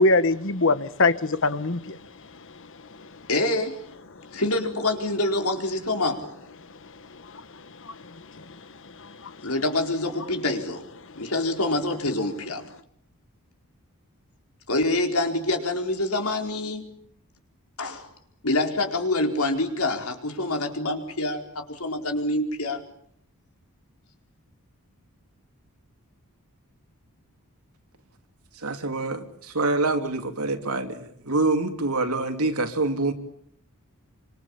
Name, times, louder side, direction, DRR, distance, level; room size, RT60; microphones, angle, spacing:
voice 1, 0.0-2.0 7.2-8.4 9.0-9.3, left 2 dB, 60° left, 1.3 m, -24 dB
voice 2, 3.3-3.9 4.3-6.3 9.4-10.8 11.1-12.6 14.7-16.8 17.8-18.1 18.4-22.8, left 2 dB, 80° left, 4.5 m, -26 dB
voice 3, 28.6-33.1, right 2 dB, 90° right, 3.0 m, -26 dB
26.5 x 25.5 x 7.2 m
head